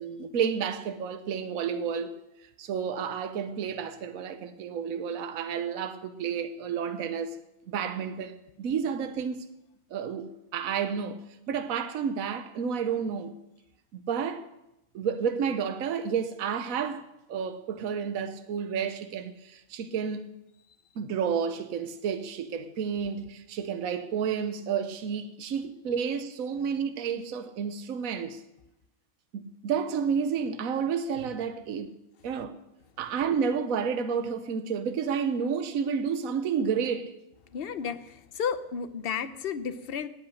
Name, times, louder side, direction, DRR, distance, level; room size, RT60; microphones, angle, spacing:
voice 1, 0.0-2.1 2.6-7.4 7.7-9.5 9.9-11.2 11.5-13.3 14.1-14.4 14.9-17.0 17.3-20.3 21.0-28.4 29.3-31.9 32.2-32.5 33.0-37.1, right 7 dB, 75° right, 1.2 m, -30 dB
voice 2, 37.5-40.1, left 7 dB, 50° left, 0.9 m, -33 dB
17.5 x 8.7 x 6.4 m
omnidirectional pair, 1.5 m